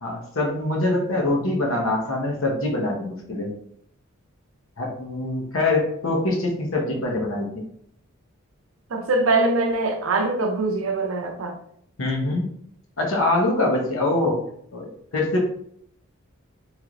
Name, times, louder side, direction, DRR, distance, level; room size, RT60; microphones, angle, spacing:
voice 1, 0.0-3.6 4.8-7.6 12.0-12.5 13.0-14.4 14.7-15.5, left 2 dB, 70° left, 0.8 m, -24 dB
voice 2, 8.9-11.6, right 2 dB, 75° right, 0.5 m, -23 dB
3.1 x 3.0 x 2.5 m
head